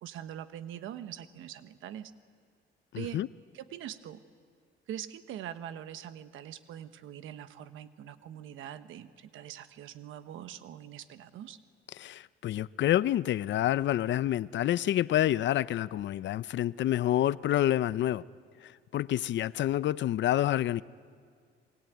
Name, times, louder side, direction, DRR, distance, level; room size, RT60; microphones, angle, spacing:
voice 1, 0.0-2.1 3.0-3.2 3.5-4.2 4.9-11.6, right 10 dB, 90° right, 1.1 m, -43 dB
voice 2, 2.9-3.3 12.0-18.2 18.6-20.8, left 12 dB, 65° left, 0.6 m, -28 dB
27.0 x 21.0 x 9.2 m
cardioid pair, 90°, 20 cm